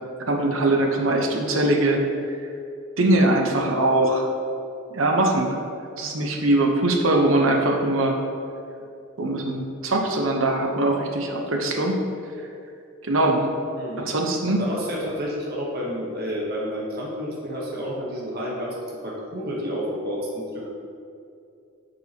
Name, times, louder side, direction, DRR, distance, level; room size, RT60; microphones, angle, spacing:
voice 1, 0.3-2.0 3.0-4.3 4.9-5.6 6.0-8.2 9.2-12.0 13.0-13.4 14.0-14.7, right 1 dB, 70° right, 2 dB, 0.9 m, -21 dB
voice 2, 13.8-14.1 14.5-20.7, equal, 50° right, -3 dB, 1.1 m, -30 dB
9.2 x 5.4 x 2.9 m, 2.5 s
head